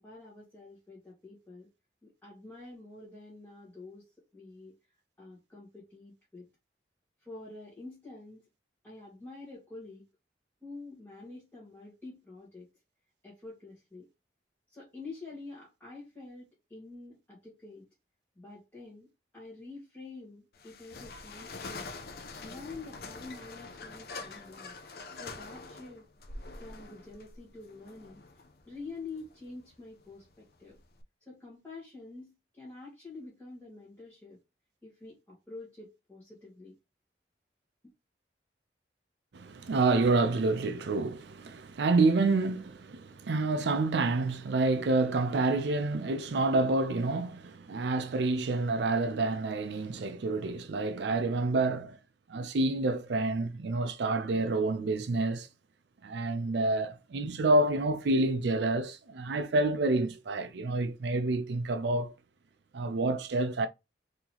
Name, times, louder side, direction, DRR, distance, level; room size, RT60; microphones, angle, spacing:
voice 1, 0.0-1.7 2.0-4.8 5.2-6.5 7.2-8.5 8.8-10.0 10.6-12.7 13.2-14.1 14.7-17.9 18.3-21.9 22.4-24.7 25.1-26.1 26.6-28.2 28.6-30.8 31.2-34.4 34.8-36.7, left 3 dB, 10° left, 1.5 m, -47 dB
sound 1, 20.5-31.0, left 3 dB, 55° left, 0.5 m, -45 dB
voice 2, 39.3-52.0 52.3-55.5 56.0-62.1 62.7-63.7, right 2 dB, 75° right, 0.5 m, -28 dB
3.9 x 2.9 x 2.9 m
head